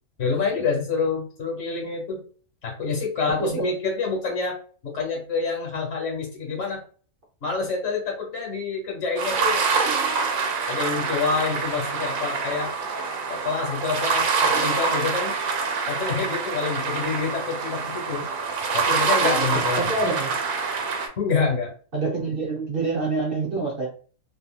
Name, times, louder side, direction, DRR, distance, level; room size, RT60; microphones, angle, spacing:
voice 1, 0.2-2.2 2.6-4.6 4.8-6.8 7.4-9.7 10.7-12.7 13.3-15.3 15.9-18.3 18.7-19.9 21.2-21.7, left 4 dB, 60° left, 0 dB, 1.4 m, -27 dB
sound 1, 9.2-21.1, right 5 dB, 80° right, 1.0 m, -25 dB
voice 2, 19.8-20.4 21.9-23.9, right 3 dB, 50° right, -1 dB, 0.8 m, -26 dB
2.8 x 2.6 x 2.3 m, 0.40 s
omnidirectional pair, 1.4 m